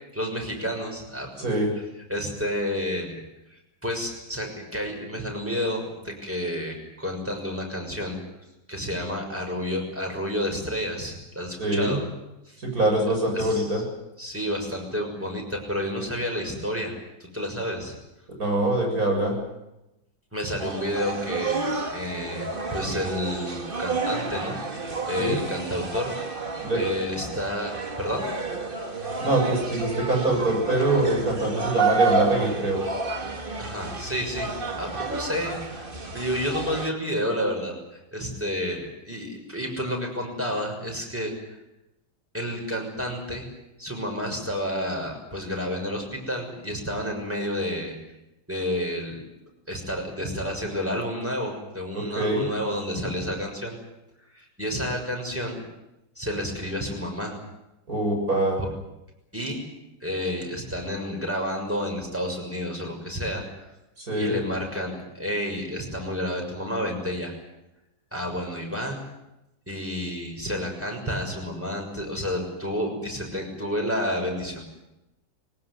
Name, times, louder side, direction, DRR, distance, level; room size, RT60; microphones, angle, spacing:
voice 1, 0.1-1.3 2.1-3.2 3.5-8.2 8.7-12.0 12.5-12.6 13.3-13.7 14.2-16.9 17.2-17.9 20.3-26.1 26.7-28.2 33.6-34.5 34.8-41.3 42.3-43.5 43.8-47.9 48.5-49.2 49.7-53.8 54.3-55.6 56.2-57.4 59.3-59.6 60.0-63.7 64.1-67.3 68.1-69.0 69.7-74.6, equal, 5° right, 1 dB, 6.3 m, -30 dB
voice 2, 1.4-1.7 11.6-12.0 12.6-13.8 18.4-19.4 25.1-25.4 26.6-26.8 29.2-32.8 51.9-52.4 57.9-58.6 64.0-64.4, right 1 dB, 50° right, 1 dB, 7.7 m, -24 dB
sound 1, 20.6-36.9, right 4 dB, 30° right, 1.8 m, -30 dB
21.5 x 19.0 x 9.7 m, 0.92 s
omnidirectional pair, 1.9 m